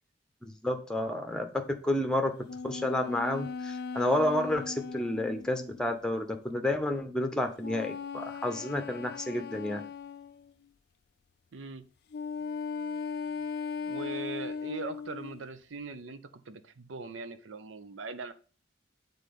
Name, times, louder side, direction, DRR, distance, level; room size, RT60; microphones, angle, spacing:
voice 1, 0.4-1.5 1.8-2.3 2.6-9.8, left 1 dB, 5° left, 5 dB, 0.8 m, -30 dB
sound 1, 2.5-6.0 7.6-10.5 12.1-15.4, left 5 dB, 55° left, 0.4 m, -38 dB
voice 2, 11.5-11.8 13.9-16.2 16.5-18.3, right 3 dB, 85° right, 11 dB, 0.7 m, -40 dB
7.5 x 3.9 x 5.3 m, 0.39 s
head